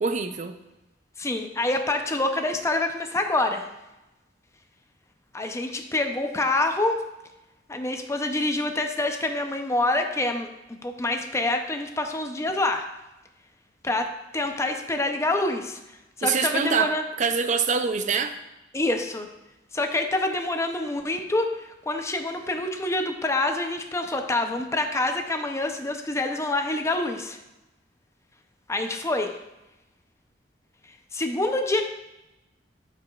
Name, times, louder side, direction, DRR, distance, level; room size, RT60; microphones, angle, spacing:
voice 1, 0.0-0.5 16.2-18.4, right 5 dB, 45° right, 8 dB, 0.4 m, -25 dB
voice 2, 1.2-3.7 5.3-7.0 7.7-12.9 13.8-15.8 16.2-17.0 18.7-19.3 19.7-27.4 28.7-29.4 31.1-31.9, left 2 dB, 15° left, 5 dB, 0.5 m, -26 dB
12.0 x 4.9 x 2.3 m, 0.96 s
head